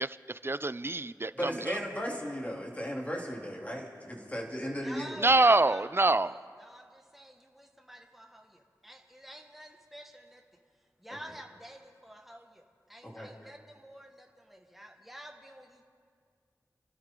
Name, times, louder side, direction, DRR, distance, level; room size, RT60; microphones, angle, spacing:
voice 1, 0.0-1.8 5.2-6.4, right 2 dB, 35° right, 16 dB, 0.4 m, -26 dB
voice 2, 1.3-5.2 11.1-11.2 13.0-13.3, equal, 20° left, -1 dB, 3.0 m, -36 dB
voice 3, 4.6-10.4 11.0-15.9, equal, 5° right, 1 dB, 1.7 m, -49 dB
29.0 x 12.5 x 3.8 m, 2.1 s
wide cardioid pair, 40°, 7 cm